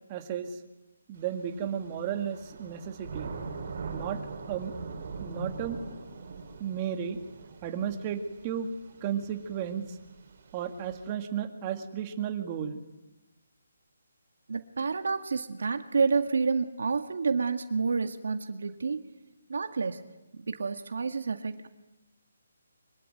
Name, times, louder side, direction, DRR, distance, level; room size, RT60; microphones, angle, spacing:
voice 1, 0.1-0.6 1.1-3.3 3.9-4.2 4.5-4.7 5.2-5.8 6.6-7.2 7.6-8.7 9.0-10.0 10.5-12.8, right 8 dB, 20° right, 6 dB, 2.2 m, -33 dB
Thunder / Rain, 1.2-11.1, right 4 dB, 45° right, 5.0 m, -42 dB
voice 2, 14.5-19.1 19.5-20.0 20.4-21.7, right 4 dB, 70° right, 7 dB, 1.8 m, -29 dB
24.5 x 23.0 x 9.3 m, 1.0 s
hypercardioid pair, 170°, 0 cm